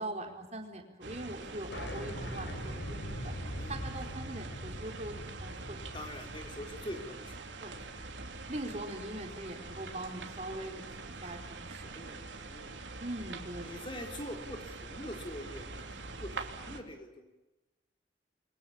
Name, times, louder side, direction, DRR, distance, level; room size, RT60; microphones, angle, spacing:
voice 1, 0.0-3.3 3.7-5.8 7.6-7.7 8.5-12.1 13.0-13.9, right 1 dB, 35° right, 3 dB, 4.5 m, -42 dB
sound 1, 1.0-16.8, right 3 dB, 80° right, 3.3 m, -44 dB
sound 2, 1.7-7.0, equal, 75° left, 5.2 m, -42 dB
voice 2, 5.9-7.5 11.9-12.2 12.5-12.7 13.6-17.3, left 1 dB, 25° left, 3 dB, 4.7 m, -44 dB
29.5 x 24.0 x 7.2 m, 1.0 s
head